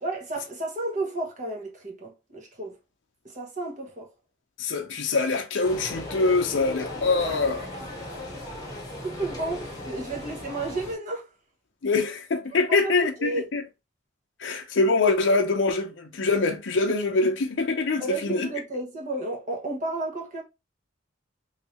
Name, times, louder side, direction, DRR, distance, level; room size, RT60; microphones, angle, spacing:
voice 1, 0.0-2.7 3.3-4.1 7.2-7.4 9.0-11.2 13.2-13.4 18.0-20.4, right 2 dB, 40° right, 1.0 m, -32 dB
voice 2, 4.6-7.7 11.8-13.6 14.4-18.5, left 3 dB, 65° left, 0.6 m, -24 dB
sound 1, 5.6-11.0, left 1 dB, 20° left, 1.0 m, -37 dB
3.3 x 2.7 x 2.8 m
head